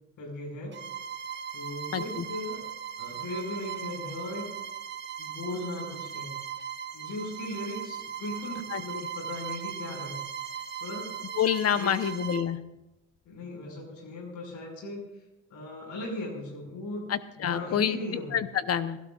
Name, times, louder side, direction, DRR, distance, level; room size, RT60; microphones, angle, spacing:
voice 1, 0.2-0.8 1.5-2.6 3.0-4.5 5.2-6.4 6.9-10.2 10.8-11.1 11.7-12.1 13.2-15.2 15.5-17.1 17.4-18.4, left 1 dB, 75° left, -1 dB, 5.9 m, -37 dB
Bowed string instrument, 0.7-12.5, right 8 dB, 35° right, 1.0 m, -38 dB
voice 2, 1.9-2.2 8.7-8.8 11.4-12.6 17.1-18.0 18.3-19.0, left 9 dB, 50° left, 12 dB, 1.0 m, -27 dB
28.5 x 12.5 x 2.5 m, 0.97 s
supercardioid pair, 80°, 32 cm